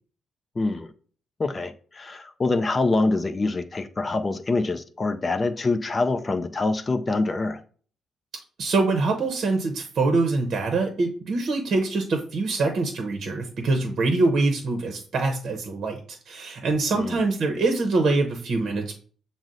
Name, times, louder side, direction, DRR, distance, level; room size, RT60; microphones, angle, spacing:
voice 1, 0.6-0.9 1.4-7.6 16.9-17.3, left 3 dB, 30° left, 0.4 m, -25 dB
voice 2, 8.6-16.0 16.3-18.9, right 3 dB, 60° right, 0.7 m, -24 dB
6.1 x 2.0 x 3.8 m
cardioid pair, 90°, 0 cm